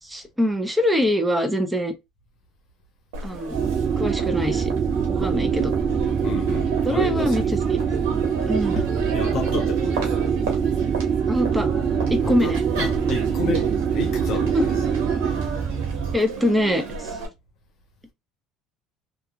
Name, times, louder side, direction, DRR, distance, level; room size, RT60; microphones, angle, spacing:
voice 1, 0.0-1.9 3.2-3.5 4.0-4.7 5.1-5.7 6.8-7.8 8.5-8.8 11.3-11.7 12.1-12.6 14.5-14.6 16.1-17.2, equal, 5° right, 0.7 m, -23 dB
Crowd, 3.1-17.3, right 4 dB, 80° right, 1.1 m, -34 dB
sound 1, 3.5-16.2, right 7 dB, 40° right, 0.3 m, -24 dB
voice 2, 6.2-7.7 8.7-8.8 9.1-10.2 12.2-14.7, left 5 dB, 60° left, 0.8 m, -31 dB
2.8 x 2.3 x 2.2 m
hypercardioid pair, 75°, 0 cm